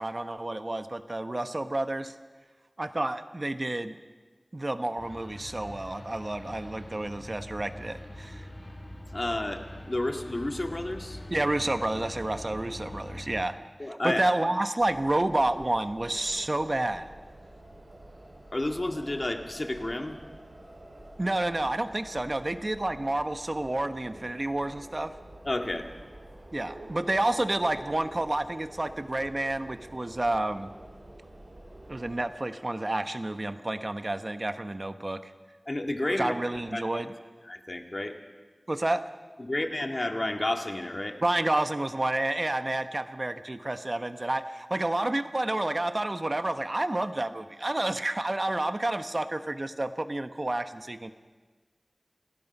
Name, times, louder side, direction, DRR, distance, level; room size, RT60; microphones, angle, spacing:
voice 1, 0.0-2.1 2.8-3.9 4.5-8.5 11.3-13.5 13.9-17.1 21.2-25.1 26.5-30.7 31.9-35.3 36.2-37.1 38.7-39.0 41.2-51.1, right 1 dB, 50° right, 9 dB, 1.1 m, -29 dB
sound 1, 5.0-13.5, left 1 dB, 80° left, 6.4 m, -43 dB
voice 2, 9.1-11.2 13.8-14.2 18.5-20.2 25.4-25.8 35.7-37.0 37.4-38.1 39.4-41.2, left 1 dB, 50° left, 4 dB, 2.0 m, -31 dB
sound 2, 14.8-32.2, right 1 dB, 85° right, 4.9 m, -48 dB
28.5 x 16.5 x 5.5 m, 1.4 s
wide cardioid pair, 45°, 0 cm